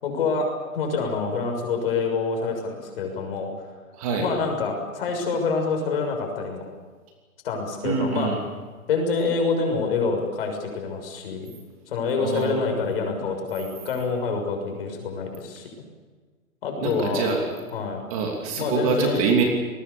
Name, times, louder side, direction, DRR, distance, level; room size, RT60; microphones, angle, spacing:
voice 1, 0.0-3.5 4.2-6.6 7.4-8.3 8.9-11.5 11.9-15.7 16.6-17.3 17.7-18.0 18.6-19.2, left 4 dB, 40° left, 3 dB, 6.5 m, -26 dB
voice 2, 3.9-4.3 7.8-8.4 12.2-12.6 16.8-17.5 18.1-19.4, right 5 dB, 25° right, 2 dB, 3.0 m, -25 dB
29.0 x 20.0 x 7.1 m, 1.4 s
hypercardioid pair, 170°, 44 cm